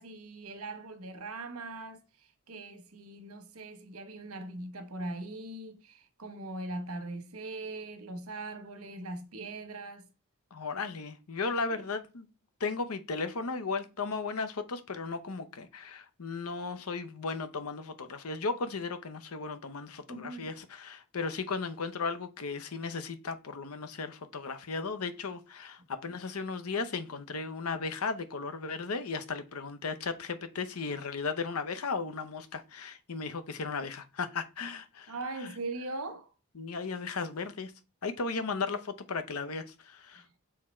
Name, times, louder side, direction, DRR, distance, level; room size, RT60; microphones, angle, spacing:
voice 1, 0.0-10.1 11.7-11.8 20.1-20.6 35.1-36.3 40.1-40.3, right 2 dB, 80° right, 1.2 m, -41 dB
voice 2, 10.5-12.3 12.6-35.1 35.4-35.5 36.5-37.7 38.0-40.2, left 4 dB, 85° left, 0.8 m, -35 dB
6.6 x 3.6 x 4.3 m
head